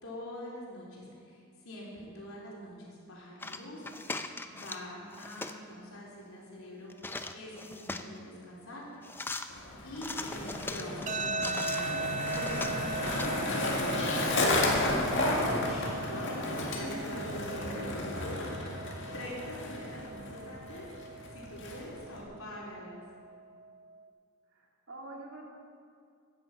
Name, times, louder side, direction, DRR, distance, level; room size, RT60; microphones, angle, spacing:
voice 1, 0.0-3.8 4.4-6.9 7.3-9.1 9.8-18.5 19.1-23.0, equal, 85° left, -4 dB, 3.7 m, -43 dB
sound 1, 3.4-4.9 5.1-5.6 6.9-8.2 9.0-9.5 10.0-11.8 12.2-13.3, left 3 dB, 10° left, 0.4 m, -39 dB
Skateboard, 9.5-22.2, left 2 dB, 60° left, 1.9 m, -33 dB
sound 2, 11.1-24.0, right 3 dB, 35° right, 0.6 m, -39 dB
voice 2, 16.8-17.3 17.7-17.9 24.5-25.5, right 2 dB, 75° right, -1 dB, 2.4 m, -46 dB
14.5 x 10.0 x 5.5 m, 2.3 s
head